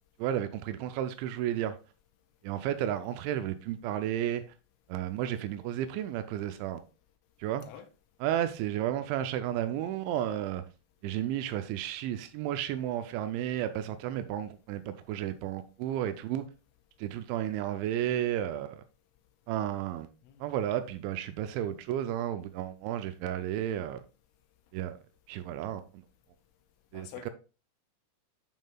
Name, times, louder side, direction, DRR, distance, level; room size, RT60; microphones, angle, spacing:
voice 1, 0.2-1.8 2.4-4.4 4.9-6.8 7.4-7.7 8.2-10.6 11.0-16.5 17.0-18.8 19.5-20.1 20.4-24.0 24.7-25.0 25.3-25.8 26.9-27.3, right 11 dB, 90° right, 2.6 m, -32 dB
voice 2, 26.9-27.3, left 10 dB, 85° left, 3.2 m, -46 dB
10.5 x 5.5 x 2.3 m
omnidirectional pair, 5.8 m